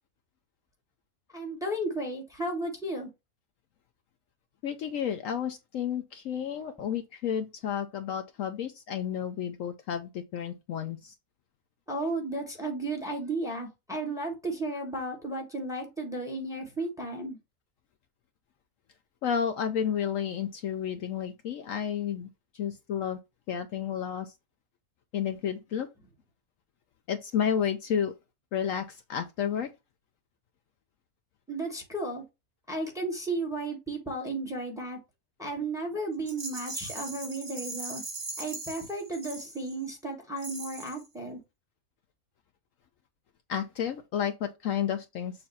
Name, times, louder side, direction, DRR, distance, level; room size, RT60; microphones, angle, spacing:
voice 1, 1.3-3.1 11.9-17.4 31.5-32.2 32.7-35.0 35.4-38.0 38.4-41.4, right 2 dB, ahead, 1.4 m, -34 dB
voice 2, 4.6-11.1 19.2-22.3 22.5-23.2 23.5-24.3 25.1-25.9 27.1-28.1 28.5-29.7 43.5-45.3, left 8 dB, 65° left, 0.9 m, -31 dB
Rattle, 36.3-39.9 40.4-41.1, right 3 dB, 35° right, 2.1 m, -40 dB
6.9 x 2.6 x 5.4 m
omnidirectional pair, 1.6 m